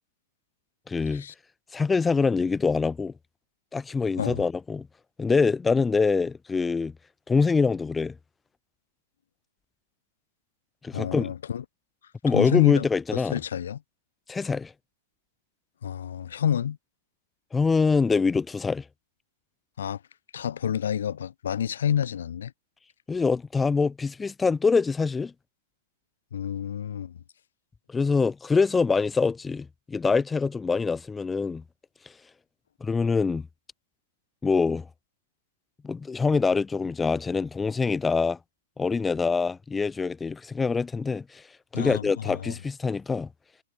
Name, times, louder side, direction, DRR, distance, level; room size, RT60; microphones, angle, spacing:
voice 1, 0.9-1.2 1.7-3.1 3.7-4.9 5.2-6.9 7.3-8.1 10.8-11.3 12.2-13.4 14.3-14.7 17.5-18.8 23.1-25.3 27.9-31.6 32.8-33.5 34.4-34.9 35.8-38.4 38.8-41.4 41.7-43.3, left 4 dB, 10° left, 1.4 m, -24 dB
voice 2, 10.9-11.6 12.3-12.8 13.1-13.8 15.8-16.8 19.8-20.0 20.3-22.5 26.3-27.2 41.7-42.6, left 9 dB, 70° left, 1.9 m, -29 dB
hypercardioid pair, 110°, 0 cm